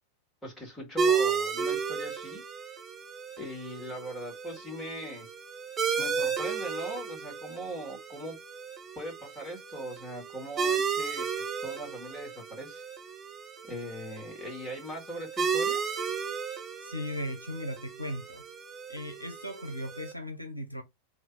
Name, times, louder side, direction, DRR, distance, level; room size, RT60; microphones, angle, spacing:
voice 1, 0.4-2.4 3.4-5.3 6.0-8.4 9.0-12.9 13.7-15.8, equal, 10° left, 2.1 m, -40 dB
sound 1, 1.0-20.1, right 6 dB, 20° right, 0.8 m, -33 dB
voice 2, 16.8-18.5 18.9-20.8, equal, 90° left, 0.6 m, -37 dB
3.2 x 2.8 x 4.0 m
figure-of-eight pair, 90°, 0 cm